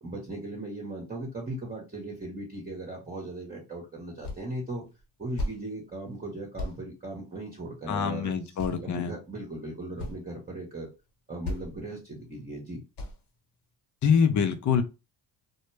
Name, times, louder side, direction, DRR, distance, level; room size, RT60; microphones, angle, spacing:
voice 1, 0.0-4.9 5.2-8.3 8.8-10.9 11.3-12.8, right 1 dB, 20° right, 0.9 m, -38 dB
sound 1, 4.2-4.5 4.8-5.6 6.0-6.2 6.6-6.8 8.0-8.1 8.6-9.0 9.5-9.6 9.8-10.2 10.9-11.1 11.4-11.8 12.2-12.4 13.0-13.3, left 1 dB, 55° left, 1.1 m, -35 dB
voice 2, 7.9-9.1 14.0-14.8, left 7 dB, 35° left, 0.6 m, -25 dB
2.1 x 2.1 x 3.2 m
supercardioid pair, 55°, 50 cm